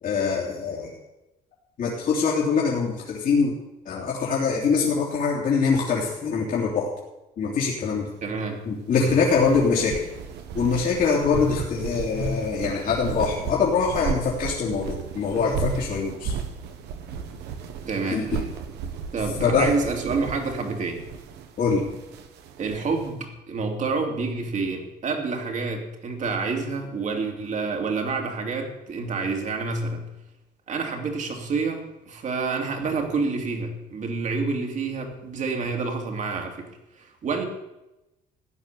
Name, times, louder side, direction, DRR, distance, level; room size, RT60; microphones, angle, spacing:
voice 1, 0.0-0.9 1.8-3.5 3.8-6.9 7.4-8.1 8.6-10.0 10.5-16.3 18.1-18.4 19.4-19.7 21.6-21.9, left 5 dB, 55° left, -4 dB, 3.2 m, -23 dB
voice 2, 8.2-8.7 9.0-9.2 17.9-18.3 19.1-21.0 22.6-30.1 30.7-36.7 36.9-37.5, right 4 dB, 45° right, 3 dB, 2.9 m, -28 dB
sound 1, 8.9-23.1, right 7 dB, 85° right, 1.6 m, -35 dB
15.5 x 9.4 x 6.9 m, 0.97 s
cardioid pair, 110°, 17 cm